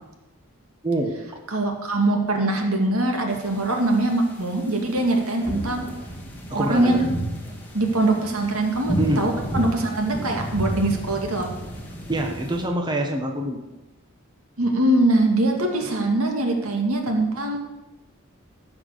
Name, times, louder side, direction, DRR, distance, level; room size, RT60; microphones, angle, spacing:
voice 1, 0.8-1.4 6.5-7.0 9.0-9.2 9.5-9.7 12.1-13.6, right 1 dB, 20° right, 2 dB, 1.2 m, -25 dB
voice 2, 1.5-5.8 6.5-7.0 7.7-11.5 14.6-17.6, right 2 dB, 75° right, 2 dB, 2.3 m, -22 dB
sound 1, 3.3-12.6, right 1 dB, 10° left, 2.7 m, -32 dB
15.5 x 6.1 x 6.9 m, 1.0 s
head